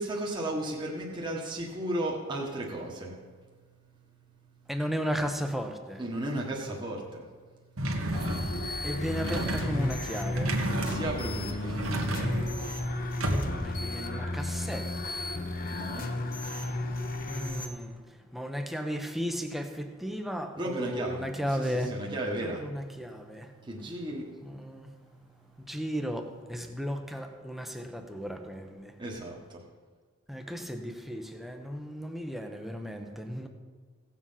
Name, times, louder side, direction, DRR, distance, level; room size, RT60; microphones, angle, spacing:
voice 1, 0.0-3.2 4.3-4.7 6.0-8.1 10.8-12.6 12.9-13.2 15.7-16.1 20.6-22.9 23.2-23.3 23.6-25.0 25.5-25.6 29.0-29.6, right 1 dB, 20° right, -2 dB, 1.5 m, -36 dB
voice 2, 4.7-6.0 8.8-10.6 13.2-15.2 17.3-21.9 22.4-23.5 24.4-24.9 25.6-29.0 30.3-33.5, equal, ahead, 5 dB, 0.9 m, -35 dB
sound 1, 7.8-13.8, right 1 dB, 80° right, 1.5 m, -32 dB
sound 2, 8.1-17.7, left 2 dB, 40° left, 1.0 m, -34 dB
17.0 x 7.5 x 5.7 m, 1.5 s
head